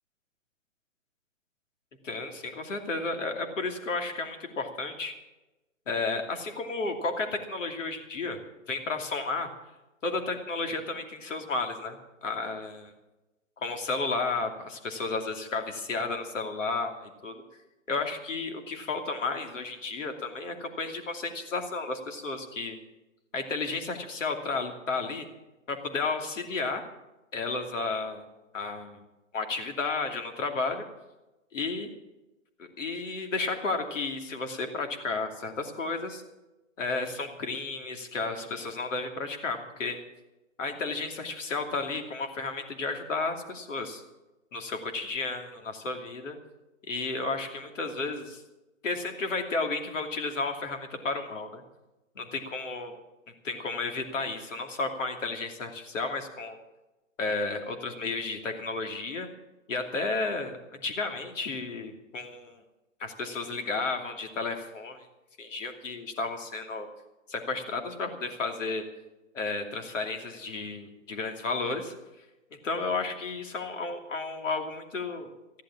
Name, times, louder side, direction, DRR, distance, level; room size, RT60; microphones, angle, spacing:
voice 1, 2.0-5.1 5.9-8.4 8.7-9.5 10.0-12.9 13.6-17.4 17.9-22.8 23.3-25.3 25.7-26.8 27.3-28.2 28.5-29.0 29.3-30.8 31.5-31.9 32.6-36.2 36.8-40.0 40.6-44.0 44.5-46.4 46.9-48.4 48.8-51.6 52.1-53.0 53.4-56.6 57.2-59.3 59.7-62.6 63.0-65.1 65.4-66.9 67.3-68.8 69.3-71.9 72.6-75.3, left 3 dB, 70° left, 5 dB, 2.8 m, -32 dB
14.0 x 11.5 x 7.3 m, 1.0 s
hypercardioid pair, 135°, 39 cm